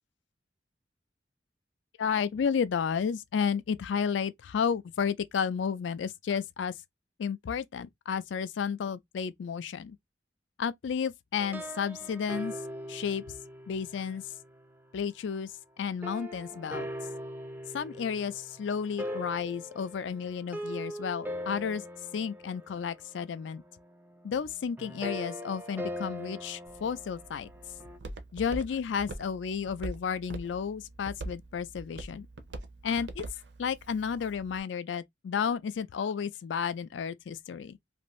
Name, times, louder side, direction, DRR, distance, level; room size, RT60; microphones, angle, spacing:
voice 1, 2.0-6.7 7.2-10.0 10.6-12.5 12.9-13.2 13.7-14.2 14.9-15.5 15.8-16.9 17.7-21.8 22.1-23.6 24.2-27.5 28.3-32.3 32.8-33.2 33.6-37.8, left 6 dB, 80° left, 0.4 m, -32 dB
sound 1, 11.4-14.7 16.0-28.0, equal, 10° right, 0.4 m, -41 dB
Walk footsteps, 26.7-34.6, right 2 dB, 75° right, 0.6 m, -44 dB
2.6 x 2.6 x 3.0 m
head